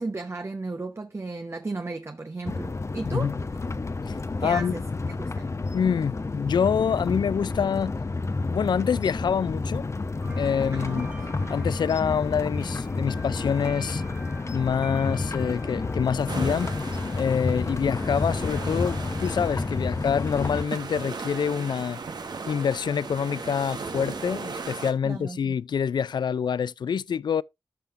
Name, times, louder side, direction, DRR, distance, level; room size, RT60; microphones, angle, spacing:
voice 1, 0.0-3.3 4.4-4.8 5.2-5.3 10.7-11.1 25.0-25.6, right 3 dB, 35° right, 1.0 m, -34 dB
sound 1, 2.5-20.6, left 3 dB, 40° left, 0.9 m, -30 dB
voice 2, 3.0-3.4 4.1-4.2 4.4-4.8 5.7-7.9 8.5-9.9 10.4-11.1 11.5-14.0 14.5-16.7 17.2-22.0 22.5-27.4, left 7 dB, 75° left, 0.4 m, -26 dB
sound 2, 10.2-19.7, right 1 dB, 15° right, 1.4 m, -49 dB
sound 3, 16.3-24.9, right 4 dB, 70° right, 1.5 m, -37 dB
13.0 x 5.7 x 2.5 m
cardioid pair, 55°, 8 cm